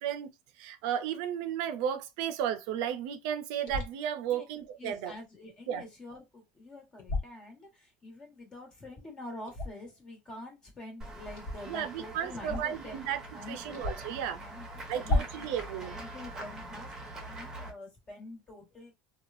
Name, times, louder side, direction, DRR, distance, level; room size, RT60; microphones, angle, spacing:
voice 1, 0.0-0.3 0.6-5.1 5.7-5.8 11.7-13.2 13.5-14.4 14.9-16.0, right 9 dB, 80° right, 0.4 m, -34 dB
sound 1, 3.7-4.0 7.0-7.3 9.5-9.9 11.3-11.6 12.4-12.8 13.1-13.2 13.7-14.2 15.0-15.5, left 1 dB, 60° left, 1.1 m, -32 dB
voice 2, 4.8-12.9 13.3-15.4 15.8-18.9, left 2 dB, 25° left, 1.3 m, -46 dB
Run / Walk footsteps / Bell, 11.0-17.7, right 2 dB, 15° right, 0.9 m, -44 dB
3.2 x 2.3 x 2.5 m
cardioid pair, 140°, 3 cm